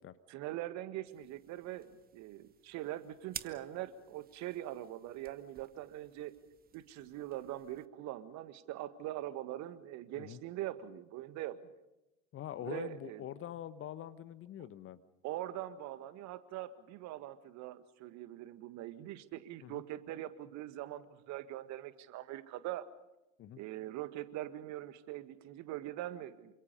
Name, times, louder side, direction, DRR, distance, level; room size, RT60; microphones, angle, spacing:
voice 1, 0.3-6.3 6.7-11.6 12.6-13.2 15.2-22.9 23.6-26.5, right 14 dB, 45° right, 13 dB, 1.8 m, -42 dB
sound 1, 1.1-7.9, right 8 dB, 25° right, 1.1 m, -53 dB
voice 2, 12.3-15.0 19.6-19.8 23.4-23.6, left 10 dB, 35° left, 14 dB, 1.2 m, -44 dB
28.0 x 26.0 x 5.3 m, 0.95 s
figure-of-eight pair, 75°, 39 cm